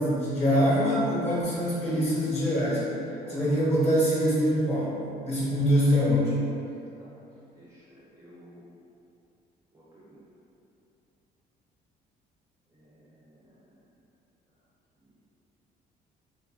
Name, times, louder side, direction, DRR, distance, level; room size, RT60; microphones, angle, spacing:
voice 1, 0.0-2.9 3.3-6.3, equal, 40° left, -8 dB, 1.1 m, -24 dB
voice 2, 7.5-8.7 9.7-10.2 12.7-13.6 15.0-15.1, right 1 dB, 15° right, -8 dB, 0.6 m, -48 dB
3.0 x 2.4 x 2.3 m, 2.7 s
cardioid pair, 110°, 17 cm